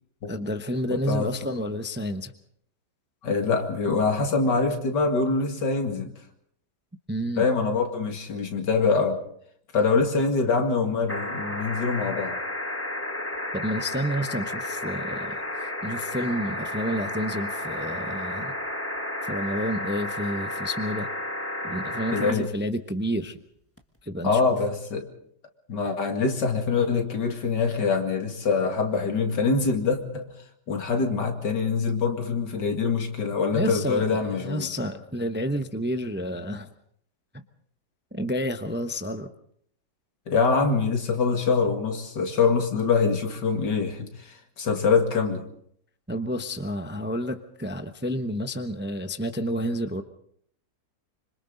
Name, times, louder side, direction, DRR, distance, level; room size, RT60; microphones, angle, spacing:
voice 1, 0.3-2.3 7.1-7.5 13.5-18.5 19.2-21.1 21.6-23.4 24.0-24.5 33.5-36.7 37.3-37.4 38.1-39.3 46.1-50.0, equal, 10° right, 0.6 m, -30 dB
voice 2, 0.9-1.3 3.2-6.1 7.4-9.2 9.7-12.4 22.1-22.5 24.2-25.1 25.7-30.3 30.7-34.7 40.3-44.1 44.6-45.4, left 4 dB, 85° left, 2.8 m, -24 dB
sound 1, 11.1-22.3 23.8-23.9, left 1 dB, 10° left, 1.1 m, -32 dB
26.0 x 26.0 x 4.0 m
omnidirectional pair, 1.8 m